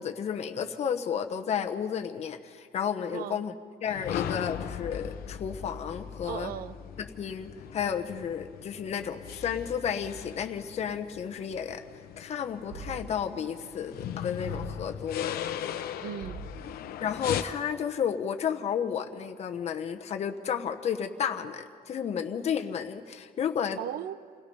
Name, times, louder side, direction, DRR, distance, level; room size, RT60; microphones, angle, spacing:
voice 1, 0.0-3.5 3.8-6.5 7.0-11.8 12.2-15.3 17.0-23.8, left 8 dB, 45° left, 1.1 m, -32 dB
sound 1, 3.9-17.4, left 10 dB, 75° left, 0.9 m, -38 dB
voice 2, 6.2-6.8 16.0-16.4 23.8-24.4, right 10 dB, 70° right, 0.7 m, -37 dB
sound 2, 12.7-13.5 14.4-15.2 16.2-17.0, right 2 dB, 35° right, 4.2 m, -43 dB
28.5 x 17.5 x 5.5 m
cardioid pair, 170°, 16 cm